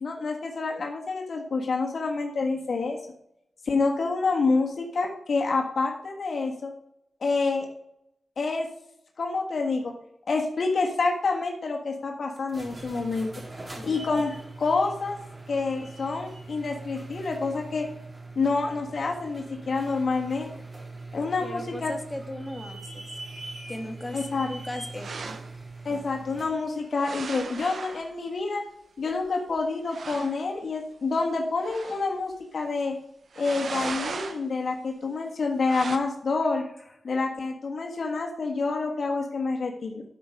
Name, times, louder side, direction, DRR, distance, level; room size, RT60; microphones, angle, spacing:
voice 1, 0.0-3.0 3.6-6.7 7.2-7.7 8.4-8.7 9.2-9.9 10.3-13.3 13.8-15.2 15.5-17.9 18.3-20.5 21.1-21.9 24.1-24.5 25.8-28.6 29.0-33.0 33.4-36.6 37.0-40.0, left 3 dB, 65° left, 3 dB, 1.5 m, -27 dB
sound 1, 12.4-26.6, right 3 dB, 35° right, 2.7 m, -42 dB
voice 2, 13.8-14.2 21.4-23.1 23.7-25.4 25.9-26.1, left 1 dB, 25° left, 5 dB, 1.6 m, -38 dB
sound 2, 25.0-25.5 27.0-28.1 29.3-29.4 29.6-29.7 29.9-30.4 31.6-32.1 33.3-34.4 35.6-36.0, right 5 dB, 70° right, 0.9 m, -36 dB
12.0 x 5.3 x 5.0 m, 0.77 s
cardioid pair, 55°, 0 cm